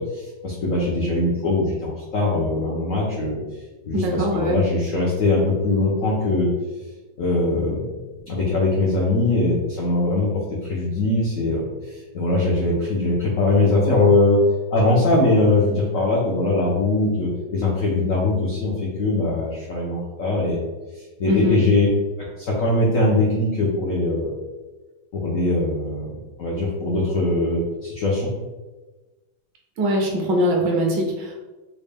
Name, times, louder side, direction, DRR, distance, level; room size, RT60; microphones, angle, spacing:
voice 1, 0.0-3.4 3.8-6.5 7.2-7.8 8.3-14.4 14.7-20.6 21.0-21.9 22.2-24.3 25.1-28.3, left 2 dB, 75° left, -4 dB, 0.7 m, -21 dB
voice 2, 3.9-4.6 21.3-21.6 29.8-31.4, equal, 70° right, 0 dB, 1.2 m, -22 dB
4.1 x 2.1 x 3.3 m, 1.2 s
omnidirectional pair, 2.2 m